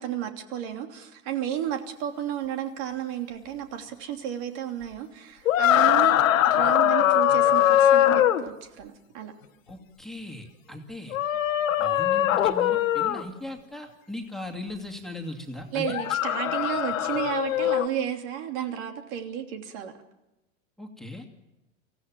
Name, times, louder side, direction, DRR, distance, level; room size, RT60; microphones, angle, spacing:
voice 1, 0.0-9.3 15.7-19.9, right 10 dB, 60° right, 3.0 m, -32 dB
sound 1, 5.5-8.4 11.1-13.2 15.8-17.9, left 11 dB, 85° left, 1.5 m, -21 dB
voice 2, 9.7-11.2 11.8-15.9 20.8-21.3, left 1 dB, ahead, 2.5 m, -38 dB
24.5 x 16.5 x 7.6 m
hypercardioid pair, 115°, 39 cm